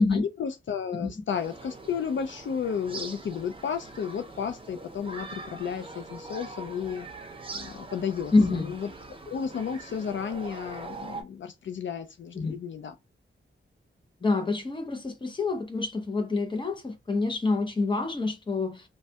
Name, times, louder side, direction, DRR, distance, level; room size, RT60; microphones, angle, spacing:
voice 1, 0.1-7.1 7.5-8.9 9.3-12.9, left 7 dB, 65° left, 0.4 m, -33 dB
sound 1, 1.3-11.2, right 3 dB, 25° right, 0.7 m, -42 dB
voice 2, 8.3-8.7 12.3-12.6 14.2-18.8, left 3 dB, 25° left, 0.8 m, -26 dB
3.1 x 2.2 x 2.7 m
wide cardioid pair, 155°, 21 cm